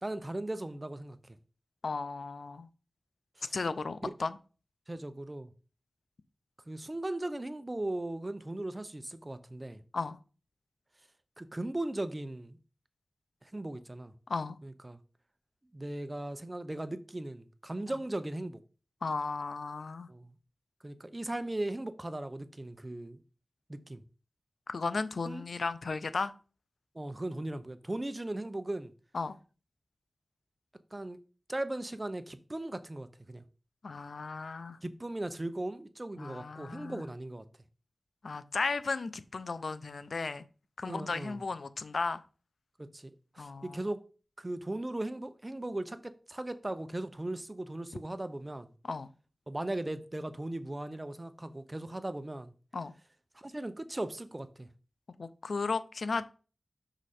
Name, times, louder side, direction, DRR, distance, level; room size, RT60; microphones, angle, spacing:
voice 1, 0.0-1.4 3.4-3.6 4.0-4.1 4.9-5.5 6.7-9.8 11.4-12.6 13.4-14.1 14.6-15.0 15.7-18.6 20.1-20.3 20.8-23.2 23.7-24.0 25.2-25.4 26.9-28.9 30.9-31.2 31.5-33.4 34.8-37.4 40.9-41.4 42.8-44.0 44.4-48.7 49.5-52.5 53.3-54.7, right 1 dB, 30° right, 0.8 m, -38 dB
voice 2, 1.8-2.7 3.5-4.4 9.9-10.2 14.3-14.6 19.0-20.1 24.7-26.3 29.1-29.4 33.8-34.8 36.2-37.0 38.2-40.4 40.8-42.2 43.4-43.8 48.9-49.1 52.7-52.9 55.2-56.2, left 4 dB, 80° left, 0.5 m, -35 dB
6.2 x 5.0 x 4.3 m
wide cardioid pair, 50°, 0 cm